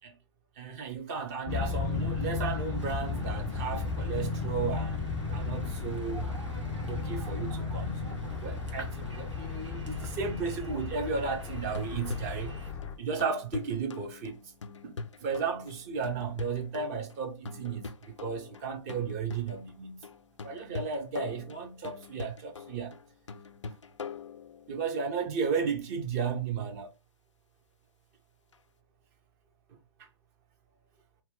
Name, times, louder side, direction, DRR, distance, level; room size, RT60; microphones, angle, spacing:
voice 1, 0.6-6.3 6.9-12.6 13.0-14.4 14.8-17.9 18.2-20.0 20.4-23.0 24.7-26.9, right 5 dB, 35° right, 0.7 m, -34 dB
sound 1, 1.5-13.0, left 4 dB, 15° left, 0.3 m, -34 dB
sound 2, 1.5-12.7, right 2 dB, 85° right, 1.1 m, -45 dB
sound 3, 11.6-25.0 28.5-28.6, left 4 dB, 85° left, 0.4 m, -44 dB
2.9 x 2.2 x 3.5 m
figure-of-eight pair, 120°, 15 cm